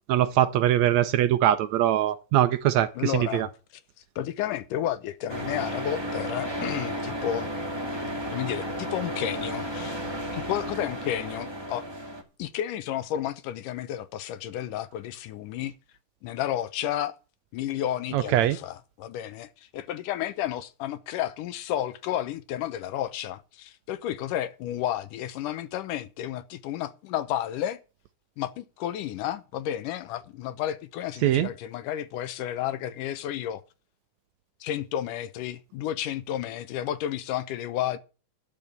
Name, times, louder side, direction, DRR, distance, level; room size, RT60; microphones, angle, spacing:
voice 1, 0.1-3.5 18.1-18.6 31.2-31.5, right 12 dB, 75° right, 1.8 m, -22 dB
voice 2, 2.9-3.5 4.2-7.5 8.3-10.0 10.2-11.8 12.4-15.7 16.2-17.2 17.5-27.8 28.4-33.6 34.6-38.0, left 11 dB, 85° left, 2.5 m, -32 dB
sound 1, 5.3-12.2, equal, 10° right, 1.3 m, -33 dB
12.0 x 5.6 x 8.6 m
omnidirectional pair, 3.6 m